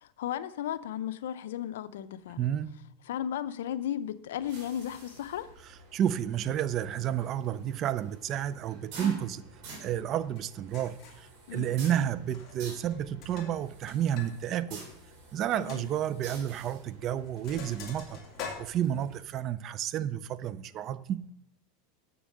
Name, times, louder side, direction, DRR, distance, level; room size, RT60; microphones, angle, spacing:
voice 1, 0.0-2.5 3.1-5.5 11.5-11.7 15.6-15.9, left 10 dB, 80° left, 0.6 m, -35 dB
voice 2, 2.4-2.8 5.9-9.4 9.8-14.8 15.3-18.2 18.6-21.2, right 10 dB, 35° right, 0.5 m, -31 dB
sound 1, 4.3-19.2, right 3 dB, 50° right, 3.9 m, -49 dB
Sink (filling or washing), 10.4-10.5 10.7-11.3 12.2-12.6 12.9-14.3 14.6-14.7 15.1-15.2 15.7-15.8 16.7-16.9 17.2-19.3, left 5 dB, 35° left, 2.3 m, -44 dB
7.3 x 6.9 x 6.4 m
supercardioid pair, 135°, 0 cm